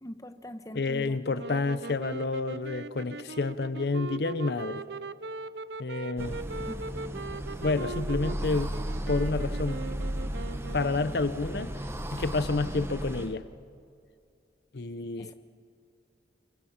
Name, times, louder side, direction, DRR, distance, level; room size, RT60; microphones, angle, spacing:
voice 1, 0.0-1.2 6.7-7.1 15.2-15.3, equal, 20° left, 8 dB, 1.1 m, -42 dB
voice 2, 0.7-4.8 5.8-6.4 7.6-8.7 9.1-9.8 10.7-11.7 12.1-13.4 14.7-15.3, left 3 dB, 70° left, 13 dB, 0.7 m, -29 dB
sound 1, 1.3-11.3, right 3 dB, 75° right, 0.6 m, -40 dB
sound 2, 6.2-13.3, equal, 15° right, 1.0 m, -34 dB
28.5 x 23.5 x 5.8 m, 2.3 s
head